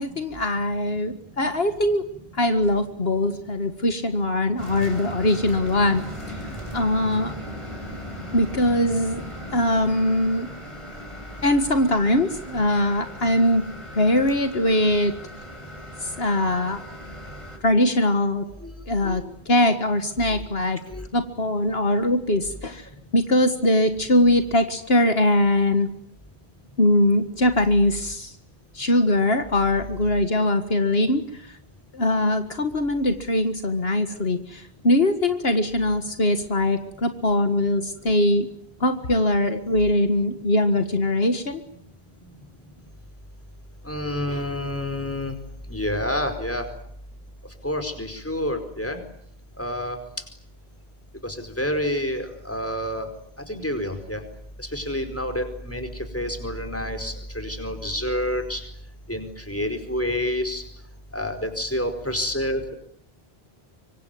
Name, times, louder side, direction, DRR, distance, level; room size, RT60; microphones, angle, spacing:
voice 1, 0.0-2.0 2.3-6.0 6.3-6.4 6.7-7.3 8.3-9.2 9.5-10.5 11.4-13.7 14.0-15.1 16.0-16.8 17.6-18.5 18.9-20.8 21.1-25.9 26.8-28.3 28.7-31.6 31.9-38.5 38.8-41.6, left 1 dB, 70° left, 8 dB, 2.0 m, -22 dB
sound 1, 4.6-17.6, equal, 30° right, 6.2 m, -38 dB
voice 2, 43.8-45.4 45.7-46.7 47.6-49.0 49.6-50.0 51.2-53.1 53.5-54.2 54.6-55.9 56.1-58.6 59.1-60.6 61.1-62.7, left 1 dB, 15° left, 8 dB, 4.9 m, -28 dB
25.5 x 25.0 x 9.3 m, 0.69 s
omnidirectional pair, 1.1 m